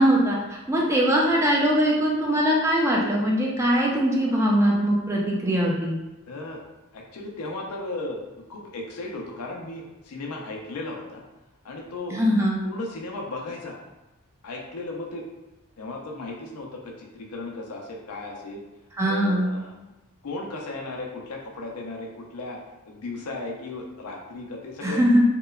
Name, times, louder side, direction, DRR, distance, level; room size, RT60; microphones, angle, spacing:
voice 1, 0.0-5.9 12.1-12.6 19.0-19.5 24.8-25.2, equal, 15° right, -2 dB, 0.4 m, -21 dB
voice 2, 6.3-6.6 6.9-8.2 8.5-11.2 11.6-12.2 12.6-13.8 14.4-15.2 15.8-18.6 19.0-19.7 20.2-22.6 22.8-25.0, left 2 dB, 90° left, 0 dB, 0.5 m, -35 dB
2.9 x 2.0 x 2.3 m, 1.0 s
head